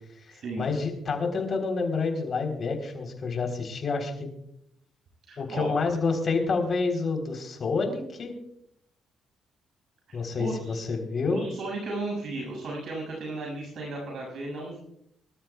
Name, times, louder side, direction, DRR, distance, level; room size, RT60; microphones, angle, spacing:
voice 1, 0.2-4.3 5.4-8.3 10.1-11.5, left 4 dB, 45° left, 3 dB, 3.7 m, -28 dB
voice 2, 5.3-5.7 10.1-10.8 11.3-14.8, right 2 dB, 65° right, -1 dB, 6.8 m, -35 dB
25.0 x 13.0 x 2.4 m, 0.75 s
cardioid pair, 90°, 0 cm